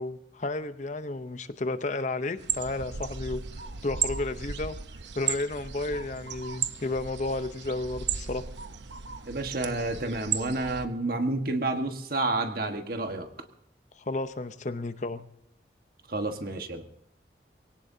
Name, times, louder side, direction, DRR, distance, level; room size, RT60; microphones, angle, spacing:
voice 1, 0.0-3.4 3.8-4.8 5.2-8.4 14.0-15.3, left 2 dB, 45° left, 11 dB, 0.8 m, -32 dB
sound 1, 2.4-10.9, right 7 dB, 90° right, 0.8 m, -35 dB
voice 2, 9.3-13.3 16.1-16.8, right 2 dB, 55° right, 6 dB, 1.4 m, -30 dB
22.5 x 17.5 x 2.8 m, 0.71 s
head